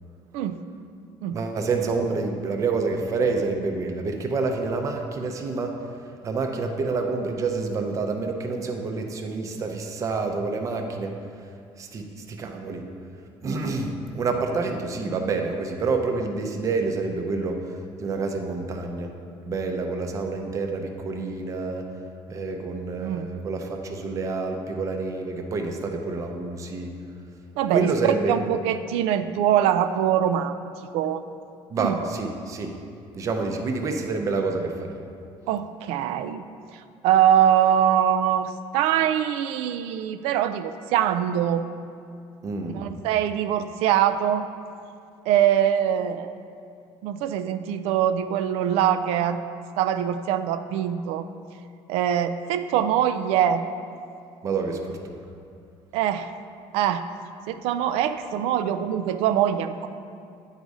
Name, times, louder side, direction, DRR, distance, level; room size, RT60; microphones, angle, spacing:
voice 1, 1.3-5.7 6.2-11.1 11.8-12.8 13.4-17.6 18.0-19.1 19.5-21.8 22.3-26.9 27.7-28.3 31.7-32.7 33.1-35.0 42.4-42.8 54.4-55.0, right 4 dB, 30° right, 4 dB, 0.6 m, -28 dB
voice 2, 27.6-31.2 31.8-32.0 35.5-36.4 37.0-41.6 42.7-44.5 45.3-46.3 47.0-49.4 49.8-51.3 51.9-53.6 55.9-56.3 56.7-57.0 57.5-59.9, right 10 dB, 85° right, 10 dB, 0.4 m, -23 dB
9.2 x 4.1 x 4.8 m, 2.4 s
cardioid pair, 155°, 10 cm